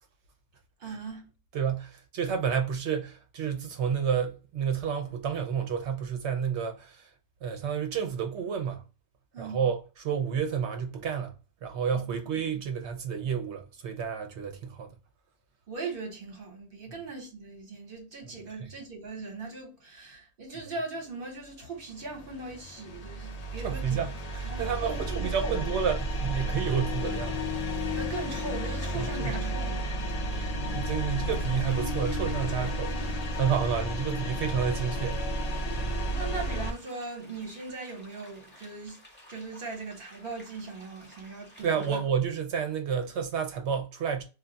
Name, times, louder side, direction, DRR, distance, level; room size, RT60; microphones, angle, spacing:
voice 1, 0.8-1.3 9.3-9.6 11.9-12.2 15.7-25.6 27.9-30.1 36.1-39.0 39.3-42.0, right 3 dB, 50° right, 1.1 m, -39 dB
voice 2, 1.5-7.1 7.4-8.8 9.4-14.9 18.6-18.7 23.6-27.4 27.7-27.8 28.9-29.4 30.3-35.2 35.8-36.0 41.6-44.2, right 7 dB, 70° right, 0.9 m, -30 dB
sound 1, 21.8-36.7, equal, 75° left, 0.3 m, -32 dB
sound 2, 23.4-42.0, left 1 dB, 10° left, 0.8 m, -55 dB
2.4 x 2.2 x 3.8 m
omnidirectional pair, 1.2 m